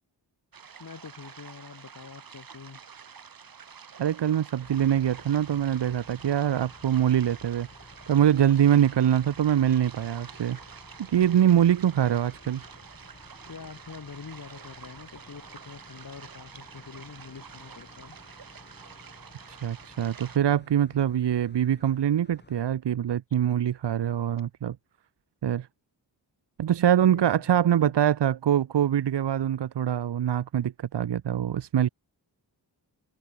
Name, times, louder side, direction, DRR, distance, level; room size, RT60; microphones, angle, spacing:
sound 1, 0.5-20.4, right 6 dB, 50° right, 1.8 m, -48 dB
voice 1, 0.8-2.8 11.1-11.7 13.5-18.2 27.0-27.9, left 5 dB, 45° left, 2.7 m, -45 dB
voice 2, 4.0-10.6 11.1-12.6 19.5-24.8 25.4-25.7 26.6-31.9, right 10 dB, 70° right, 1.0 m, -24 dB
sound 2, 4.6-22.6, left 2 dB, 25° left, 5.4 m, -53 dB
wide cardioid pair, 105°, 44 cm